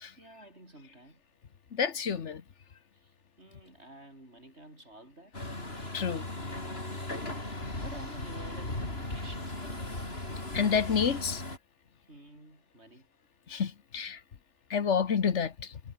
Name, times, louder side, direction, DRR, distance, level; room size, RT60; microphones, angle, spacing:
voice 1, 0.1-1.2 2.9-5.3 7.7-9.9 12.1-13.1, right 1 dB, 60° right, 8.3 m, -51 dB
voice 2, 1.7-2.4 5.9-6.3 10.5-11.4 13.5-14.2 14.7-15.7, left 6 dB, 70° left, 1.5 m, -29 dB
Truck, 5.3-11.6, left 2 dB, 55° left, 5.5 m, -37 dB
omnidirectional pair, 1.3 m